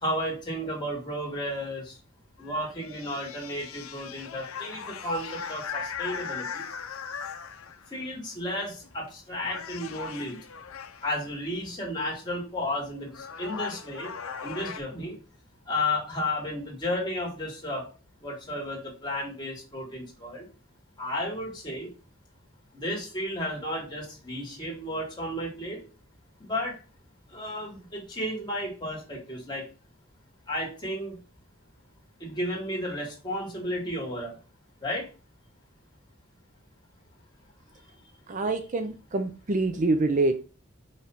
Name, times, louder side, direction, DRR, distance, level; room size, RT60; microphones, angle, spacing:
voice 1, 0.0-2.0 2.4-6.7 7.9-10.4 11.0-14.1 14.4-15.2 15.7-17.8 18.2-20.5 21.0-21.9 22.7-25.8 26.4-26.8 27.3-29.7 30.5-31.2 32.2-34.4 34.8-35.1, left 1 dB, 20° left, -3 dB, 2.6 m, -33 dB
sound 1, 2.4-8.0 8.8-9.1 9.4-11.3 12.6-12.7 13.1-14.8, left 6 dB, 80° left, 0.7 m, -39 dB
voice 2, 38.3-40.4, right 2 dB, 40° right, 7 dB, 0.6 m, -26 dB
5.7 x 3.3 x 5.8 m, 0.34 s
head